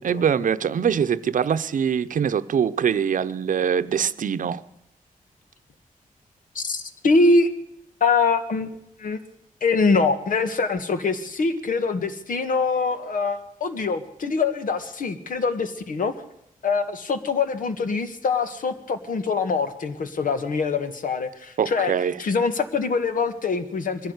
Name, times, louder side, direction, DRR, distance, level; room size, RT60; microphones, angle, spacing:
voice 1, 0.0-4.6 21.6-22.1, right 7 dB, 65° right, 0.8 m, -23 dB
voice 2, 6.6-7.5 8.0-9.2 9.6-16.1 16.6-21.9 22.2-24.1, left 4 dB, 65° left, 1.8 m, -24 dB
22.0 x 15.0 x 8.1 m
wide cardioid pair, 170°, 15 cm